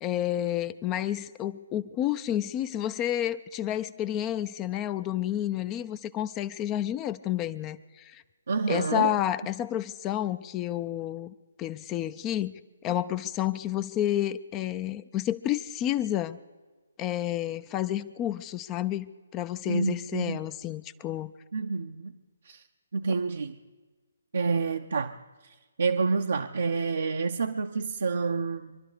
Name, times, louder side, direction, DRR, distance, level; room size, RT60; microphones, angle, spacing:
voice 1, 0.0-8.2 8.7-12.5 12.8-16.4 17.0-19.1 19.3-21.3, left 12 dB, 20° left, 0.5 m, -30 dB
voice 2, 8.5-9.2 19.7-20.4 21.5-22.6 22.9-23.6 24.3-25.2 25.4-28.8, right 4 dB, 65° right, 0.7 m, -29 dB
24.5 x 12.0 x 5.0 m
figure-of-eight pair, 140°, 0 cm